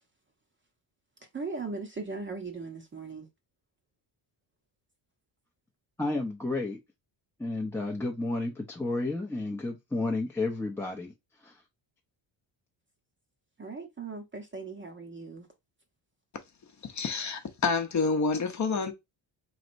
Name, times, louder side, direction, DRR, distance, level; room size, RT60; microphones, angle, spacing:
voice 1, 1.3-3.3 13.6-15.5, right 4 dB, 25° right, 0.8 m, -38 dB
voice 2, 6.0-6.8 7.4-11.1 11.4-11.6, left 2 dB, 5° left, 0.6 m, -31 dB
voice 3, 16.8-18.9, left 4 dB, 35° left, 0.8 m, -28 dB
4.1 x 3.2 x 2.5 m
cardioid pair, 130°, 47 cm